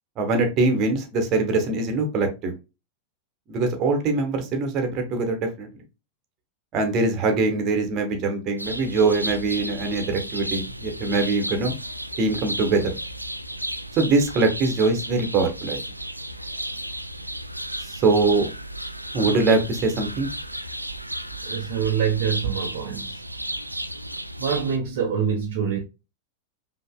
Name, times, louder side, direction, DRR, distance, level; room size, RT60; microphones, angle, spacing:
voice 1, 0.2-2.6 3.5-5.7 6.7-11.7 12.2-12.9 13.9-15.8 17.8-18.5 19.1-20.3, right 3 dB, 35° right, 1.1 m, -23 dB
sound 1, 8.6-24.8, right 1 dB, 90° right, 0.3 m, -33 dB
voice 2, 21.4-23.2 24.4-25.8, right 7 dB, 55° right, 0.7 m, -25 dB
5.3 x 2.8 x 2.2 m
figure-of-eight pair, 90°, 0 cm